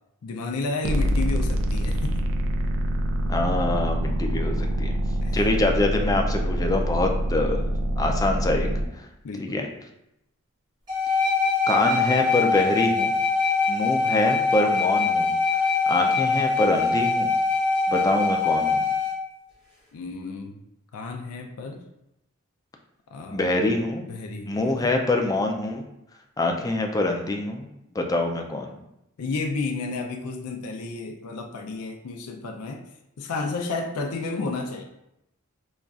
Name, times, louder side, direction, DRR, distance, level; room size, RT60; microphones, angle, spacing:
voice 1, 0.2-2.2 5.2-5.4 9.2-9.7 19.9-20.6 20.9-21.8 23.1-23.4 24.0-24.9 29.2-32.8 33.2-34.8, left 3 dB, 90° left, 3 dB, 0.4 m, -32 dB
sound 1, 0.8-8.8, right 1 dB, 65° right, 0.4 m, -25 dB
voice 2, 3.3-4.9 5.3-7.7 8.0-8.7 9.0-9.1 9.4-9.7 11.7-13.1 13.7-17.3 17.9-18.8 23.3-24.0 24.5-25.8 26.4-27.7 28.0-28.7, left 2 dB, 15° left, 3 dB, 0.3 m, -25 dB
sound 2, 10.9-19.1, left 4 dB, 20° right, 1.1 m, -23 dB
5.2 x 2.3 x 2.3 m, 0.84 s
head